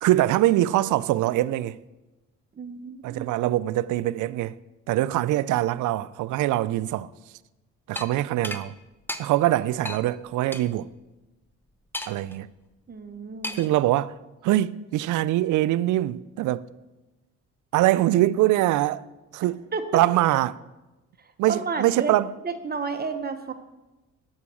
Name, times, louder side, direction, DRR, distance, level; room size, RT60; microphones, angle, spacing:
voice 1, 0.0-1.8 3.0-4.6 4.9-7.1 7.9-8.7 9.2-10.9 12.1-12.5 13.5-14.1 14.4-16.6 17.7-19.0 19.3-19.6 19.9-20.6 21.4-22.3, right 15 dB, 80° right, 0.5 m, -23 dB
voice 2, 2.5-3.3 12.9-13.6 19.7-20.0 21.5-22.1 22.4-23.5, right 4 dB, 30° right, 1.1 m, -31 dB
sound 1, 8.0-8.1 8.4-8.6 9.1-9.2 9.9-10.0 10.5-10.6 11.9-12.3 13.4-13.8, left 1 dB, 5° left, 0.8 m, -33 dB
9.5 x 6.4 x 7.0 m
cardioid pair, 90°, 30 cm